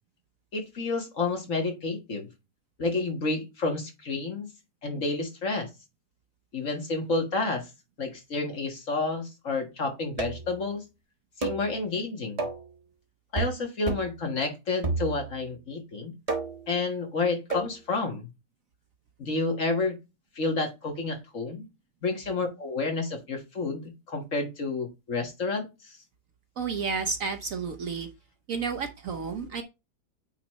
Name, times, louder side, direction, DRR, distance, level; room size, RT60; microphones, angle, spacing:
voice 1, 0.5-2.3 2.8-4.5 4.8-5.7 6.5-7.7 8.0-10.8 11.4-12.5 13.3-16.1 16.7-18.3 19.2-20.0 20.4-21.7 22.0-26.0, left 3 dB, 50° left, 4 dB, 1.9 m, -30 dB
sound 1, 10.2-10.6 11.4-11.7 12.4-12.7 13.4-13.6 13.9-14.2 14.8-15.4 16.3-16.7 17.5-17.7, right 4 dB, 25° right, 1.3 m, -31 dB
voice 2, 26.6-28.1 28.5-29.6, right 5 dB, 60° right, 6 dB, 1.0 m, -31 dB
8.8 x 4.1 x 3.1 m, 0.25 s
omnidirectional pair, 1.8 m